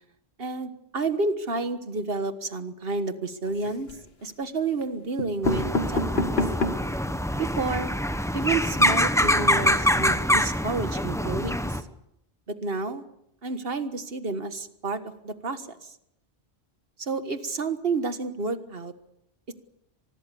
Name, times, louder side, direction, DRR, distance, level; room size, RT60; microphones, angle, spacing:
voice 1, 0.4-3.9 4.2-6.2 7.4-7.9 8.3-11.8 12.5-13.0 13.4-15.9 17.0-18.9, right 3 dB, 70° right, 10 dB, 1.8 m, -30 dB
sound 1, 3.4-4.1 4.8-4.9 5.2-7.0 7.5-7.6 7.8-7.9 8.2-8.3, left 2 dB, 80° left, 1.9 m, -28 dB
sound 2, 5.4-11.8, equal, 5° left, 1.1 m, -24 dB
25.5 x 20.5 x 7.0 m, 0.78 s
omnidirectional pair, 1.0 m